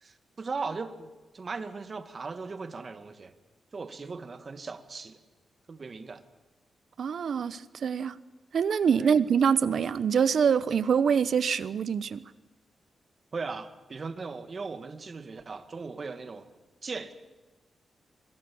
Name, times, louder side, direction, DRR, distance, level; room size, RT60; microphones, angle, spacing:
voice 1, 0.0-3.3 3.7-5.2 5.7-6.2 9.0-9.2 13.3-16.5 16.8-17.1, right 4 dB, 45° right, 2.1 m, -38 dB
voice 2, 7.0-8.2 8.5-12.2, right 7 dB, 70° right, 1.0 m, -25 dB
25.0 x 21.5 x 7.2 m
cardioid pair, 80°, 0 cm